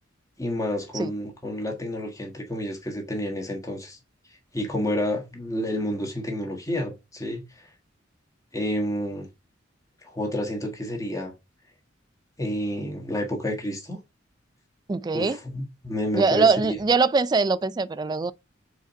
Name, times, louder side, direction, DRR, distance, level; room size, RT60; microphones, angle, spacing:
voice 1, 0.4-4.0 4.5-7.7 8.5-9.3 10.0-11.3 12.4-14.0 15.1-16.8, equal, 15° left, 1.5 m, -30 dB
voice 2, 14.9-15.4 16.1-18.3, right 4 dB, 20° right, 0.3 m, -22 dB
4.9 x 4.0 x 5.6 m
head